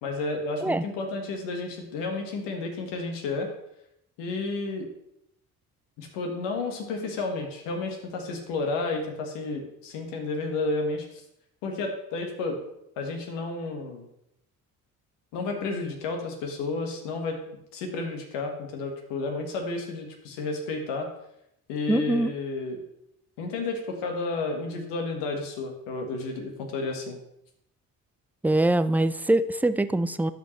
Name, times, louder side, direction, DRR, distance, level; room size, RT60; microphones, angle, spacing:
voice 1, 0.0-3.5 4.2-4.9 6.0-11.2 11.6-12.6 13.0-14.1 15.3-17.4 17.7-21.1 21.7-22.8 23.4-27.2, left 3 dB, 80° left, 3 dB, 1.6 m, -31 dB
voice 2, 21.9-22.3 28.4-30.3, right 1 dB, 5° right, 13 dB, 0.3 m, -23 dB
12.5 x 5.2 x 3.2 m, 0.80 s
hypercardioid pair, 55°, 42 cm